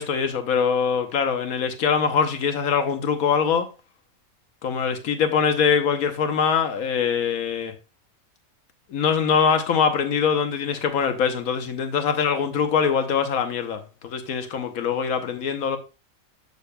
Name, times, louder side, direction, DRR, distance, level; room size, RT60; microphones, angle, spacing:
voice 1, 0.0-3.7 4.6-7.7 8.9-15.8, left 6 dB, 90° left, 1.3 m, -23 dB
8.3 x 6.8 x 2.2 m
omnidirectional pair, 1.5 m